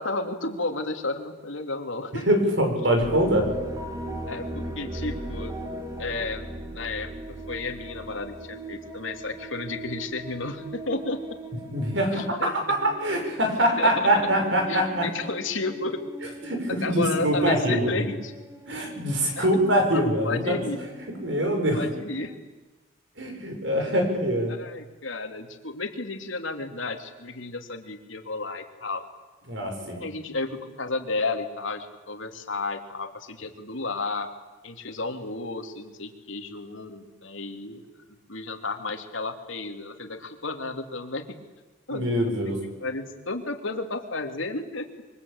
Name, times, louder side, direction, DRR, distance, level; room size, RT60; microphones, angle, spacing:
voice 1, 0.0-2.3 4.3-5.6 6.0-11.2 12.1-12.8 13.8-13.9 14.7-16.0 16.8-18.3 19.4-19.5 19.9-20.9 21.7-22.4 24.5-29.0 30.0-34.3 34.6-41.3 41.9-44.9, left 3 dB, 75° left, 5 dB, 2.9 m, -32 dB
voice 2, 2.3-3.5 11.7-15.1 16.5-18.0 18.7-20.6 21.2-21.8 23.2-24.5 29.5-30.0 41.9-42.6, right 1 dB, 65° right, 3 dB, 6.8 m, -24 dB
sound 1, 3.0-22.4, right 1 dB, 15° right, 2.6 m, -39 dB
26.5 x 24.0 x 8.7 m, 1.2 s
head